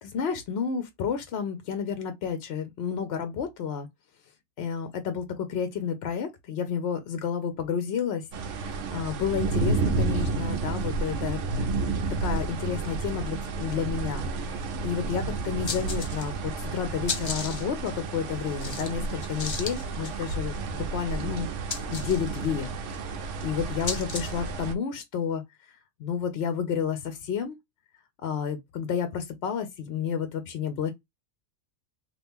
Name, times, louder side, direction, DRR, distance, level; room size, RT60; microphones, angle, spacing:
voice 1, 0.0-3.9 4.6-11.9 12.2-21.5 21.9-22.8 23.4-25.4 26.0-27.6 28.2-30.9, left 7 dB, 65° left, 0.8 m, -31 dB
sound 1, 8.3-24.7, right 3 dB, 75° right, 0.9 m, -31 dB
sound 2, 14.7-14.8 15.0-15.1 15.5-16.5 16.8-24.5, left 4 dB, 40° left, 0.4 m, -37 dB
2.8 x 2.5 x 3.5 m
omnidirectional pair, 1.3 m